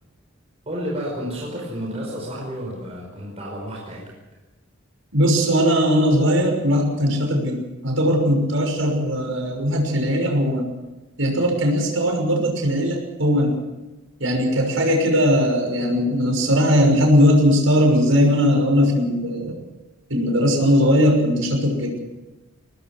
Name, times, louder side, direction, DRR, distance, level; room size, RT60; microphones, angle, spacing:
voice 1, 0.6-4.1, equal, 35° right, -2 dB, 5.1 m, -31 dB
voice 2, 5.1-10.7 11.2-13.6 14.2-19.6 20.1-22.0, equal, 85° right, 3 dB, 6.1 m, -19 dB
23.0 x 19.5 x 6.3 m, 1.1 s
head